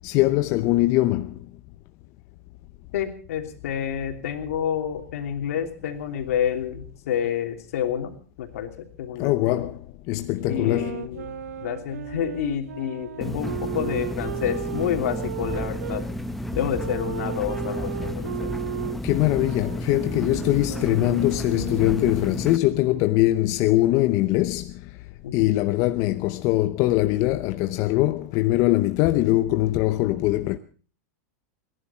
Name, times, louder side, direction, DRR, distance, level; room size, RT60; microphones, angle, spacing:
voice 1, 0.0-1.4 9.2-9.8 10.1-11.0 19.0-25.0 25.3-30.6, left 17 dB, 45° left, 0.7 m, -22 dB
voice 2, 2.9-8.1 8.4-8.7 9.0-9.7 10.5-11.4 11.6-16.0 16.5-18.5 20.1-20.3 25.2-25.5, left 9 dB, 75° left, 3.0 m, -29 dB
sound 1, 10.4-16.0 16.7-22.3, right 11 dB, 90° right, 0.9 m, -36 dB
sound 2, 13.2-22.6, left 1 dB, ahead, 0.9 m, -32 dB
29.5 x 11.0 x 4.3 m
supercardioid pair, 145°, 8 cm